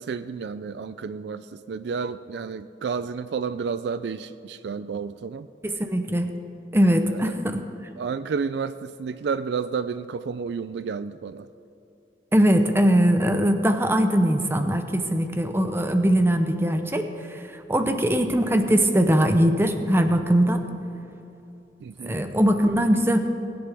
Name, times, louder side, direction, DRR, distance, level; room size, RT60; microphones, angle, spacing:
voice 1, 0.0-5.5 7.0-7.4 8.0-11.5 21.8-22.2, right 5 dB, 60° right, 13 dB, 0.3 m, -31 dB
voice 2, 5.6-6.3 6.7-7.6 12.3-17.4 17.7-20.6 22.0-23.2, equal, 15° right, 7 dB, 0.7 m, -21 dB
20.5 x 10.5 x 3.5 m, 2.9 s
head